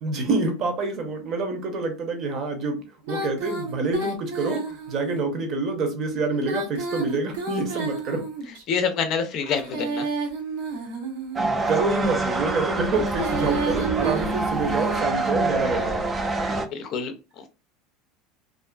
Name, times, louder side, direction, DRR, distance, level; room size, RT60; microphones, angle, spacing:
voice 1, 0.0-2.8 3.1-8.3 11.7-16.0, right 3 dB, 45° right, 0.8 m, -27 dB
Female singing, 3.0-5.2 6.3-8.6 9.4-11.6 12.8-15.1, right 3 dB, 80° right, 0.8 m, -31 dB
voice 2, 8.7-10.1 16.7-17.5, left 6 dB, 50° left, 0.5 m, -27 dB
sound 1, 11.4-16.7, right 2 dB, 25° right, 0.4 m, -26 dB
2.5 x 2.3 x 2.2 m
supercardioid pair, 125°, 0 cm